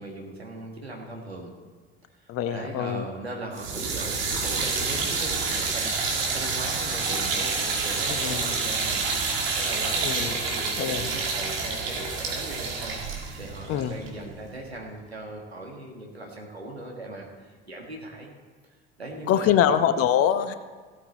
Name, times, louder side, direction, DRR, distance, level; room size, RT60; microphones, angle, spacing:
voice 1, 0.0-1.5 2.2-9.1 9.6-13.0 13.4-18.3 19.0-19.6, right 1 dB, 90° right, 0 dB, 1.8 m, -39 dB
voice 2, 2.3-3.0 4.6-4.7 8.1-8.5 10.0-10.3 10.8-11.0 13.7-13.9 19.3-20.5, left 9 dB, 50° left, 10 dB, 1.0 m, -24 dB
sound 1, 3.5-14.6, right 4 dB, 65° right, 2.4 m, -28 dB
16.0 x 8.4 x 4.2 m, 1.5 s
figure-of-eight pair, 60°, 31 cm